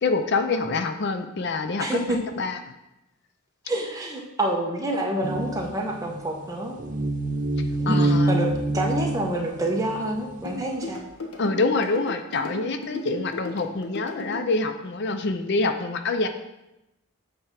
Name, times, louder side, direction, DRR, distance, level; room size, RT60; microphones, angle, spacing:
voice 1, 0.0-2.6 7.9-8.3 11.4-16.3, left 3 dB, 50° left, 8 dB, 0.5 m, -26 dB
voice 2, 1.8-2.2 3.7-6.8 7.8-11.0, right 1 dB, 15° right, 0 dB, 1.0 m, -27 dB
sound 1, 5.2-10.4, right 2 dB, 35° right, 0.6 m, -26 dB
sound 2, 10.4-14.4, left 2 dB, 85° left, 1.1 m, -36 dB
8.6 x 3.5 x 5.8 m, 0.92 s
head